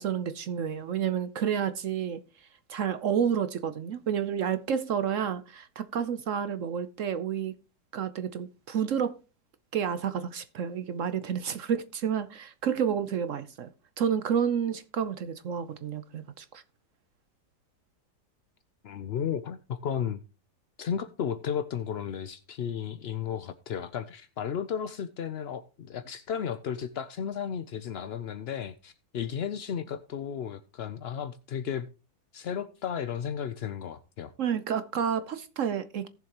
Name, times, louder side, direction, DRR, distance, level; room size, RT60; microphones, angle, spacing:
voice 1, 0.0-2.2 2.7-7.5 7.9-9.2 9.7-13.7 14.0-16.6 34.4-36.1, right 8 dB, 60° right, 0.9 m, -30 dB
voice 2, 18.8-20.2 20.8-31.9 32.3-34.3, left 8 dB, 70° left, 0.6 m, -34 dB
18.0 x 7.1 x 2.9 m
omnidirectional pair, 1.8 m